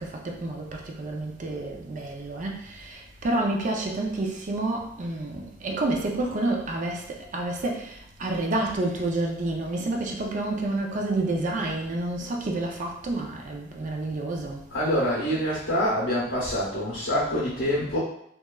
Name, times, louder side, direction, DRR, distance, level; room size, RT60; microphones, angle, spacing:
voice 1, 0.0-14.7, right 2 dB, 40° right, 0.4 m, -29 dB
voice 2, 14.7-18.0, equal, 90° left, 0.7 m, -26 dB
2.9 x 2.2 x 2.2 m
head